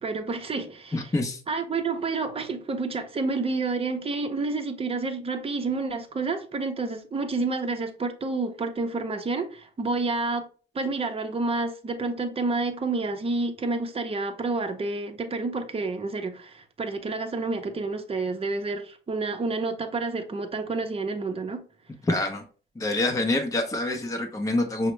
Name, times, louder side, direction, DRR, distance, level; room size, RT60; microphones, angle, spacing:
voice 1, 0.0-1.1 1.5-10.5 10.7-21.6, right 3 dB, 30° right, 0.7 m, -29 dB
voice 2, 0.9-1.4 22.1-22.4 22.8-24.9, left 2 dB, 15° left, 0.7 m, -26 dB
5.6 x 2.1 x 3.1 m
cardioid pair, 90°, 20 cm